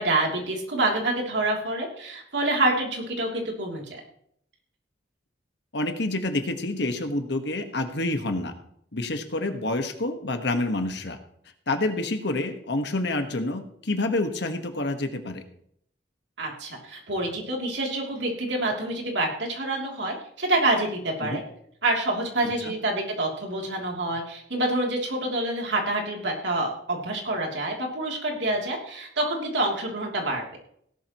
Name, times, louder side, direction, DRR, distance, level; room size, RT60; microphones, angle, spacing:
voice 1, 0.0-4.0 16.4-21.4 21.8-30.6, right 2 dB, 75° right, 0 dB, 3.1 m, -27 dB
voice 2, 5.7-8.5 8.9-11.2 11.7-15.4 21.2-21.4 22.6-22.7, left 2 dB, 70° left, 6 dB, 1.5 m, -28 dB
17.0 x 11.5 x 3.1 m, 0.70 s
head